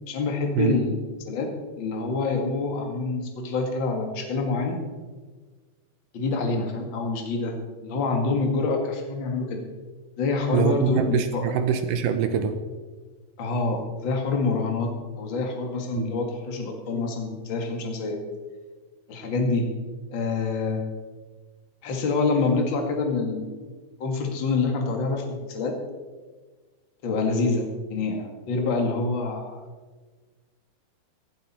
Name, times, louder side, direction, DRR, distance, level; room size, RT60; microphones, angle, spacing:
voice 1, 0.1-1.0 1.3-1.5 1.8-4.8 6.1-7.6 7.8-9.6 10.2-11.5 13.4-18.2 19.1-19.7 20.1-20.8 21.8-23.6 24.0-25.7 27.0-29.6, left 3 dB, 40° left, 3 dB, 1.8 m, -26 dB
voice 2, 10.5-12.6 16.0-16.1, right 8 dB, 75° right, 8 dB, 1.9 m, -24 dB
17.5 x 11.5 x 4.3 m, 1.4 s
omnidirectional pair, 4.7 m